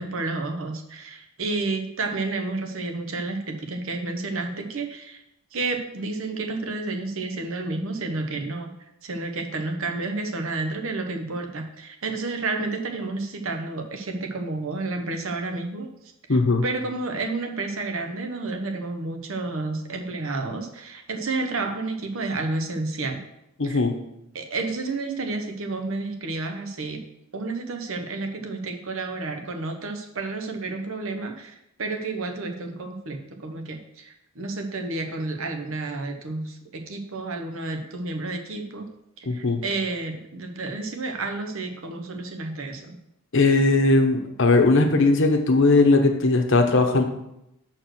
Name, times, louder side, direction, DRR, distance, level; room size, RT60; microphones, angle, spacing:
voice 1, 0.0-5.2 5.5-8.7 9.0-15.9 16.3-23.2 23.6-23.8 24.3-27.0 27.3-38.9 39.2-43.0, right 3 dB, 65° right, 4 dB, 1.0 m, -30 dB
voice 2, 16.3-16.6 23.6-23.9 39.3-39.6 43.3-47.0, left 3 dB, 55° left, 4 dB, 0.9 m, -19 dB
6.3 x 4.4 x 6.3 m, 0.84 s
head